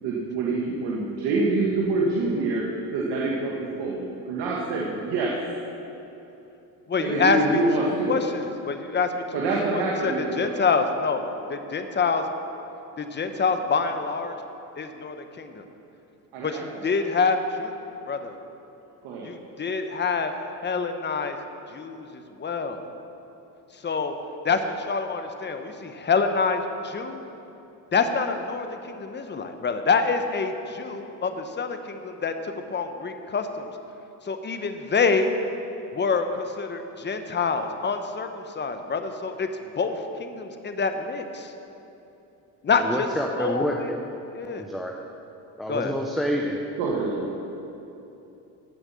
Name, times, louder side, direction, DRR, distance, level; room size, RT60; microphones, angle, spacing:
voice 1, 0.0-2.7 2.9-5.3 7.0-8.2 9.3-10.5 16.3-16.8 19.0-19.3 46.8-47.3, right 3 dB, 80° right, -3 dB, 1.6 m, -26 dB
voice 2, 6.9-9.2 9.7-12.2 13.0-14.3 14.8-15.6 16.4-17.7 18.1-18.3 19.2-21.4 21.7-22.8 23.8-24.1 24.4-27.2 27.9-33.7 34.2-35.3 35.9-39.5 39.8-41.5 42.6-43.1 43.4-43.9 44.3-44.7 45.7-45.9, left 4 dB, 25° left, 7 dB, 1.0 m, -26 dB
voice 3, 42.8-44.1 44.5-44.9 45.6-46.6, equal, ahead, 1 dB, 0.7 m, -28 dB
15.0 x 5.8 x 6.9 m, 3.0 s
cardioid pair, 100°, 41 cm